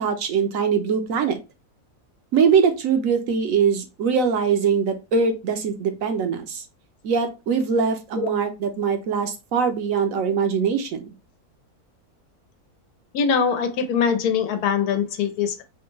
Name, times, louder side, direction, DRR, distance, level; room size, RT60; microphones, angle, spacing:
voice 1, 0.0-1.4 2.3-6.6 7.0-11.0, right 6 dB, 70° right, 1.0 m, -22 dB
voice 2, 13.1-15.6, left 6 dB, 85° left, 1.2 m, -22 dB
3.4 x 2.1 x 3.0 m
omnidirectional pair, 1.6 m